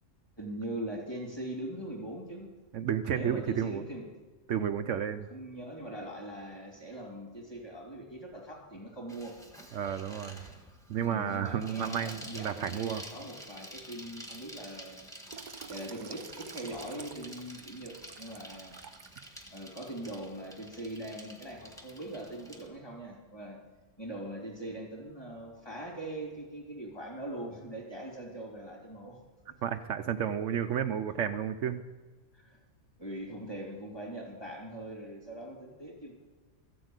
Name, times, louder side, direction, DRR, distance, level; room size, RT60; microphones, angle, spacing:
voice 1, 0.4-2.5 3.1-4.1 5.3-9.4 11.0-15.1 15.7-18.7 19.5-23.6 24.0-29.2 29.5-29.6 32.3-32.6 33.0-36.1, right 1 dB, 20° left, -1 dB, 3.2 m, -41 dB
voice 2, 2.7-3.8 4.5-5.3 9.7-10.4 10.9-13.0 29.6-31.8, right 9 dB, 70° right, 8 dB, 1.0 m, -32 dB
Bicycle, 9.1-22.7, equal, ahead, 1.6 m, -49 dB
Water tap faucet / Sink (filling or washing), 15.3-19.6 20.0-20.3, right 6 dB, 50° right, 0.6 m, -49 dB
14.0 x 7.8 x 8.1 m, 1.3 s
omnidirectional pair, 1.4 m